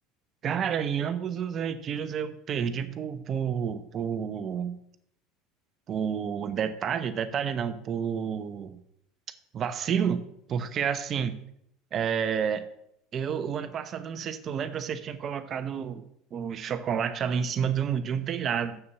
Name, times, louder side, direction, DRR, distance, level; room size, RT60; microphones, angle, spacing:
voice 1, 0.4-4.8 5.9-8.8 9.5-10.2 10.5-11.4 11.9-12.7 13.1-16.0 16.3-18.8, right 7 dB, 40° right, 11 dB, 1.0 m, -30 dB
7.2 x 6.8 x 6.9 m, 0.74 s
hypercardioid pair, 80°, 0 cm